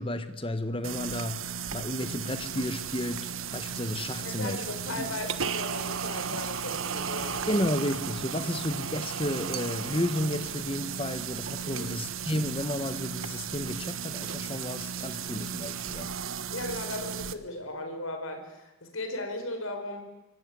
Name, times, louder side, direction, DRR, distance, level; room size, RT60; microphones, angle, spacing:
voice 1, 0.0-1.4 1.7-4.6 5.0-5.1 7.5-16.1, left 1 dB, 25° left, 10 dB, 1.5 m, -32 dB
sound 1, 0.8-17.3, right 7 dB, 70° right, 1.3 m, -35 dB
voice 2, 4.2-7.7 11.6-11.9 16.5-20.0, left 2 dB, 75° left, 6 dB, 5.3 m, -37 dB
25.0 x 24.0 x 9.6 m, 1.0 s
head